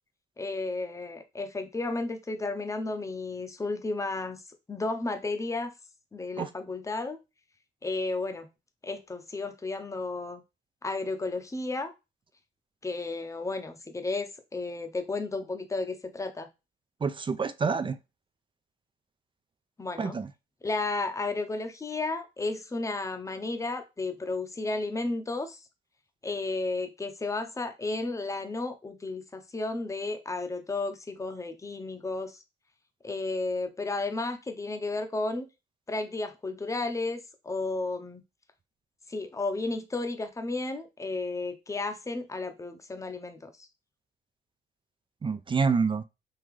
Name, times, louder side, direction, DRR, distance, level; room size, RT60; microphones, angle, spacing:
voice 1, 0.4-4.4 4.7-5.7 6.1-7.2 7.8-8.5 8.8-10.4 10.8-11.9 12.8-16.5 19.8-20.2 20.6-25.6 26.2-32.4 33.0-35.5 35.9-38.2 39.1-43.5, left 3 dB, 15° left, 0.7 m, -33 dB
voice 2, 17.0-18.0 20.0-20.3 45.2-46.0, right 5 dB, 25° right, 0.4 m, -27 dB
3.8 x 2.8 x 3.1 m
cardioid pair, 90°, 20 cm